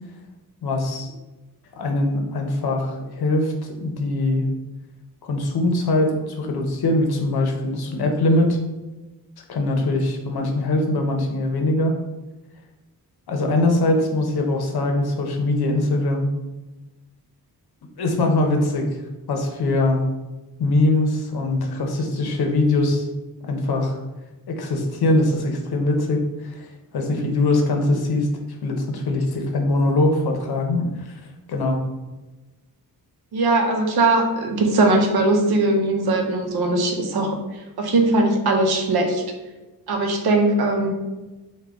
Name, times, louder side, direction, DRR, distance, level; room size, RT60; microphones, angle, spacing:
voice 1, 0.6-1.1 1.7-4.5 5.2-8.6 9.5-12.0 13.3-16.3 18.0-18.9 19.3-20.0 20.6-23.1 23.4-24.0 24.5-28.3 28.6-31.2 31.5-31.8, left 2 dB, 75° left, 3 dB, 0.7 m, -22 dB
voice 2, 33.3-37.4 37.8-39.2 39.9-40.9, right 2 dB, 80° right, 3 dB, 0.7 m, -20 dB
3.6 x 2.2 x 3.4 m, 1.1 s
wide cardioid pair, 135°, 38 cm